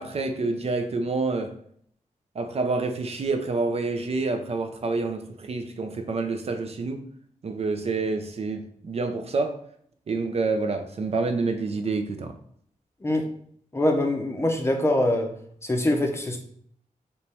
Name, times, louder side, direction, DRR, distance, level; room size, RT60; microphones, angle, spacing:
voice 1, 0.0-1.5 2.3-7.0 7.4-9.6 10.1-12.4, right 3 dB, 50° right, 6 dB, 0.5 m, -28 dB
voice 2, 13.7-15.3 15.6-16.4, left 1 dB, 20° left, 3 dB, 0.6 m, -24 dB
3.3 x 3.0 x 4.2 m, 0.64 s
wide cardioid pair, 170°, 14 cm